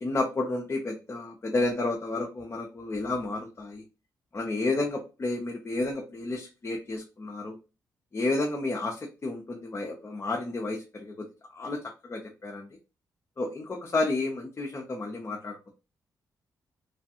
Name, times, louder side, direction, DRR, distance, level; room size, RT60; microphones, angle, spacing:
voice 1, 0.0-3.8 4.3-7.6 8.1-11.1 11.5-12.7 13.4-15.7, left 2 dB, 35° left, 0 dB, 0.7 m, -31 dB
3.3 x 2.2 x 2.8 m, 0.30 s
cardioid pair, 80°, 7 cm